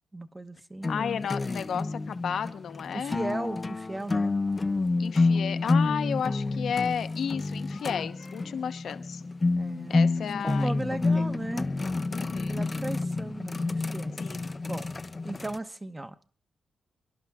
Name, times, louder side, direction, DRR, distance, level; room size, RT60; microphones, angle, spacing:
voice 1, 0.1-0.9 2.9-4.3 6.5-6.6 9.6-10.0 10.4-11.7 12.5-14.9 15.2-16.1, right 2 dB, 20° right, 10 dB, 1.1 m, -36 dB
sound 1, 0.8-15.6, left 3 dB, 30° left, 0.6 m, -29 dB
voice 2, 0.9-3.2 5.0-9.2 9.9-11.3 12.1-13.2 14.2-14.5, left 7 dB, 70° left, 11 dB, 1.0 m, -33 dB
28.0 x 11.5 x 3.7 m, 0.40 s
cardioid pair, 70°, 0 cm